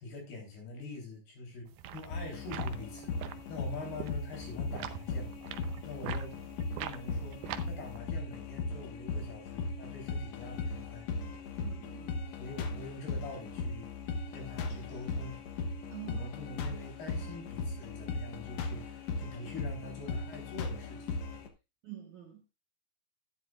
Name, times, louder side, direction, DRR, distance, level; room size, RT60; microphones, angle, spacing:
voice 1, 0.0-3.1 3.5-5.3 5.8-6.4 6.8-11.1 12.4-13.9 14.3-15.4 16.0-21.2, left 3 dB, 65° left, 1 dB, 5.5 m, -44 dB
sound 1, 1.7-8.0, right 11 dB, 80° right, 2.6 m, -44 dB
sound 2, 2.1-21.5, left 3 dB, 80° left, 1.5 m, -38 dB
voice 2, 11.6-12.3 15.9-16.3 21.8-22.5, right 11 dB, 60° right, 1 dB, 2.2 m, -46 dB
11.5 x 10.5 x 2.4 m, 0.27 s
omnidirectional pair, 4.9 m